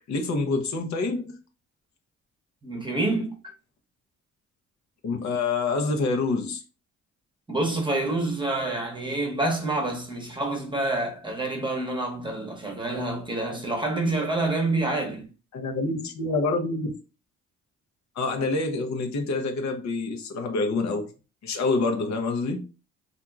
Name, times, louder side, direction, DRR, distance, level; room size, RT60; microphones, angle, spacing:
voice 1, 0.1-1.4 5.0-6.6 15.5-16.9 18.2-21.1 21.4-22.6, left 3 dB, 65° left, 0.8 m, -27 dB
voice 2, 2.6-3.3 7.5-15.3, right 2 dB, 15° right, 0.9 m, -27 dB
2.8 x 2.5 x 2.3 m
cardioid pair, 90°, 30 cm